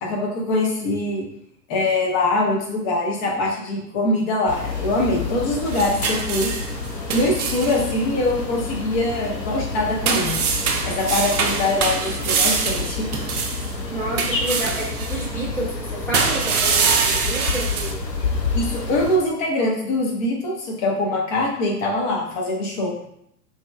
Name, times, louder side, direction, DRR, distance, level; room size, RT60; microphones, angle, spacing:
voice 1, 0.0-1.2 1.7-6.5 7.1-10.4 10.8-13.1 18.5-23.0, left 2 dB, 30° left, -1 dB, 0.9 m, -23 dB
sound 1, 4.5-19.2, left 3 dB, 85° left, 0.8 m, -29 dB
sound 2, 5.6-7.8 10.0-13.7 14.2-15.2 16.1-17.9, right 5 dB, 65° right, 0.6 m, -24 dB
voice 2, 13.9-18.0, right 1 dB, 5° left, -7 dB, 0.6 m, -29 dB
4.0 x 3.0 x 2.3 m, 0.74 s
figure-of-eight pair, 105°, 49 cm